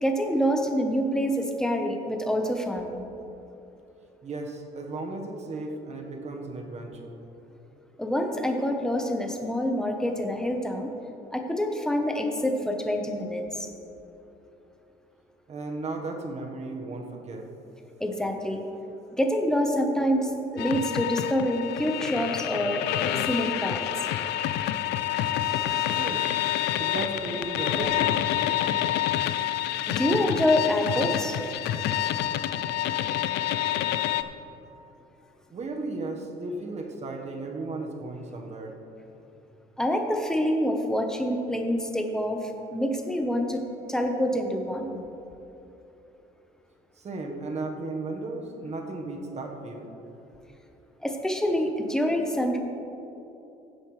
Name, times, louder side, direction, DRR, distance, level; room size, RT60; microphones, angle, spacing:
voice 1, 0.0-3.0 8.0-10.9 11.3-13.7 18.0-18.6 19.2-22.8 23.3-23.8 29.4-29.5 29.9-31.4 39.8-43.6 43.9-45.0 51.0-52.6, equal, 5° left, 3 dB, 1.1 m, -26 dB
voice 2, 4.2-7.2 15.5-17.5 25.9-26.3 26.8-28.6 35.5-38.7 47.0-49.9, right 2 dB, 40° right, 2 dB, 1.5 m, -35 dB
sound 1, 20.6-34.2, left 12 dB, 80° left, 0.5 m, -28 dB
16.5 x 7.6 x 3.3 m, 3.0 s
cardioid pair, 110°, 17 cm